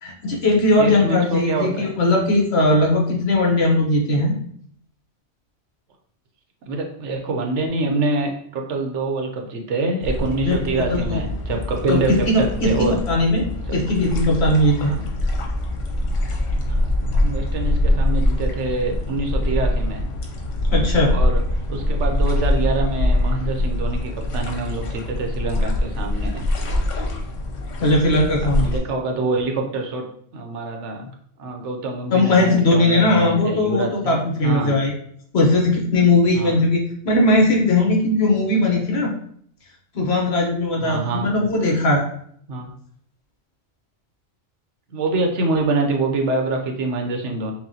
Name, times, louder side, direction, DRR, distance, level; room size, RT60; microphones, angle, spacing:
voice 1, 0.0-4.3 10.4-11.2 11.9-12.7 13.1-14.9 20.7-21.1 27.8-28.7 32.1-34.9 35.3-39.1 39.9-42.0, left 2 dB, 60° left, -1 dB, 1.1 m, -19 dB
voice 2, 0.8-1.9 6.7-13.0 14.8-15.1 16.7-20.1 21.1-21.4 21.7-26.4 28.6-30.0 30.3-31.1 31.4-34.1 34.4-34.8 36.3-36.5 40.8-41.5 42.5-42.7 44.9-47.5, right 3 dB, 70° right, 3 dB, 1.0 m, -25 dB
sound 1, 10.0-28.8, left 1 dB, 80° left, 1.1 m, -23 dB
5.9 x 2.2 x 2.7 m, 0.64 s
omnidirectional pair, 1.3 m